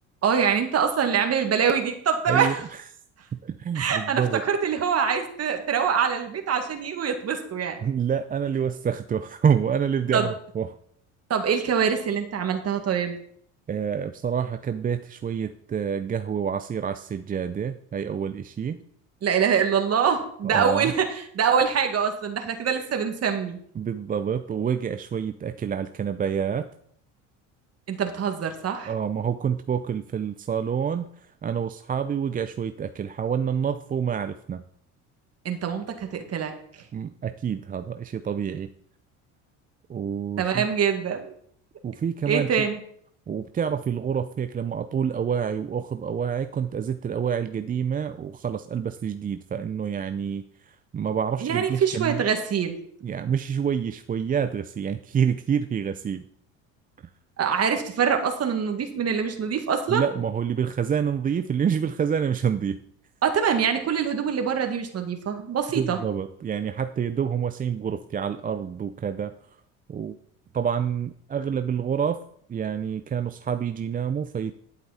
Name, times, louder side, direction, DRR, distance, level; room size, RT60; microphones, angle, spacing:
voice 1, 0.2-2.6 3.8-7.8 10.1-10.3 11.3-13.2 19.2-21.1 21.3-23.6 27.9-28.9 35.5-36.5 40.4-41.3 42.3-42.8 51.4-52.8 57.4-60.1 63.2-66.0, right 7 dB, 40° right, 5 dB, 2.0 m, -24 dB
voice 2, 2.3-2.8 3.3-4.4 7.8-10.8 13.7-18.8 20.5-20.9 23.8-26.7 28.9-34.6 36.9-38.7 39.9-40.7 41.8-42.7 43.3-52.2 53.0-56.2 57.0-57.1 59.9-62.8 65.7-69.4 69.9-70.2 70.5-72.2 72.5-74.5, right 7 dB, 25° right, 10 dB, 0.5 m, -27 dB
10.5 x 8.3 x 4.2 m, 0.66 s
supercardioid pair, 85°, 36 cm